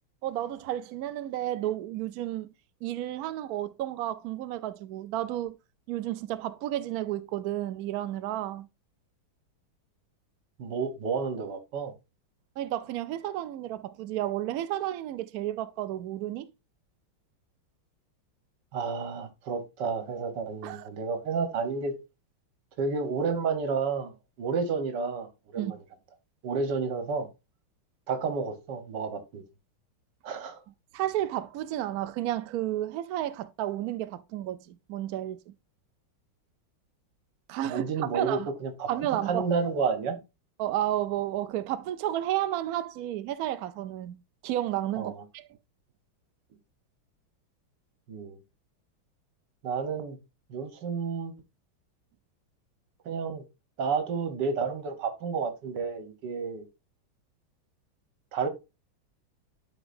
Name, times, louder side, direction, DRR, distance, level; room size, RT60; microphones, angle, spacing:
voice 1, 0.2-2.5 2.8-5.6 5.9-8.7 12.6-16.5 20.6-20.9 25.6-25.8 30.9-35.5 37.5-38.5 38.9-39.4 40.6-45.5, right 13 dB, 90° right, 0.8 m, -32 dB
voice 2, 10.6-11.9 18.7-22.0 22.8-25.8 26.4-27.3 28.1-29.4 30.2-30.6 37.6-38.9 39.3-40.2 45.0-45.2 48.1-48.4 49.6-50.2 50.5-51.3 53.1-53.4 53.8-56.7 58.3-58.5, right 5 dB, 60° right, 1.7 m, -31 dB
12.0 x 5.0 x 2.5 m
omnidirectional pair, 2.3 m